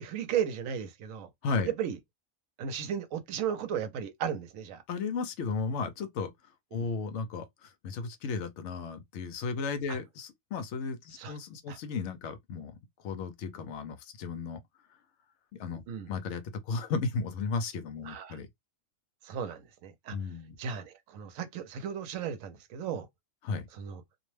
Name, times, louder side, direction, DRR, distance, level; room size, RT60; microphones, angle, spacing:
voice 1, 0.0-1.3 1.6-2.0 2.6-4.8 6.7-6.9 9.9-10.0 11.1-11.3 11.7-11.8 15.9-16.1 18.1-18.4 19.2-20.2 20.6-23.1 23.7-24.0, right 8 dB, 80° right, 1.0 m, -35 dB
voice 2, 4.9-6.3 6.7-12.8 13.0-14.6 15.5-15.8 16.1-18.5 20.1-20.6 23.4-23.7, left 4 dB, 70° left, 0.8 m, -34 dB
2.5 x 2.1 x 3.1 m
omnidirectional pair, 1.4 m